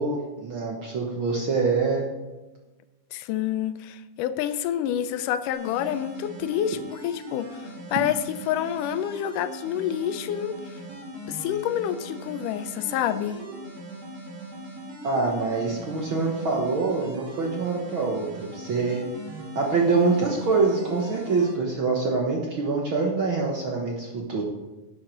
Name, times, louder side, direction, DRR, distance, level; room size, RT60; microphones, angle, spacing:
voice 1, 0.0-2.1 15.0-19.0 19.5-24.4, right 4 dB, 60° right, 0 dB, 1.4 m, -25 dB
voice 2, 3.1-8.2 8.5-10.5 11.3-13.4, left 10 dB, 85° left, 12 dB, 2.2 m, -28 dB
sound 1, 5.5-21.5, right 1 dB, 40° right, 3.6 m, -40 dB
11.0 x 7.6 x 5.3 m, 1.1 s
omnidirectional pair, 3.7 m